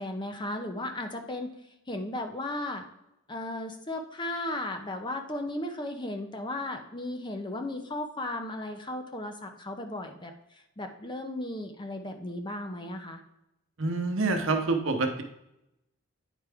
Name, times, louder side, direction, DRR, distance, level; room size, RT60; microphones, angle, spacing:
voice 1, 0.0-1.5 1.9-2.8 3.3-13.2, left 1 dB, 20° left, 5 dB, 0.6 m, -35 dB
voice 2, 13.8-15.2, right 3 dB, 60° right, 5 dB, 0.9 m, -27 dB
9.1 x 4.6 x 3.5 m, 0.85 s
head